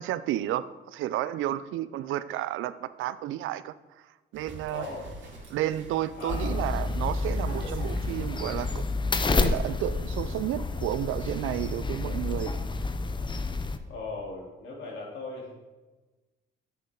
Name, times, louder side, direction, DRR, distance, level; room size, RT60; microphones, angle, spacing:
voice 1, 0.0-3.7 4.3-4.9 5.5-8.8 9.3-12.5, right 13 dB, 85° right, 0.5 m, -31 dB
sound 1, 4.3-8.8 9.6-9.7, right 2 dB, 65° right, 2.9 m, -45 dB
voice 2, 4.7-5.1 6.1-6.6 13.9-15.5, left 3 dB, 75° left, 3.5 m, -38 dB
sound 2, 6.3-13.8, left 3 dB, 25° left, 0.7 m, -29 dB
9.9 x 8.5 x 3.9 m
cardioid pair, 90°, 20 cm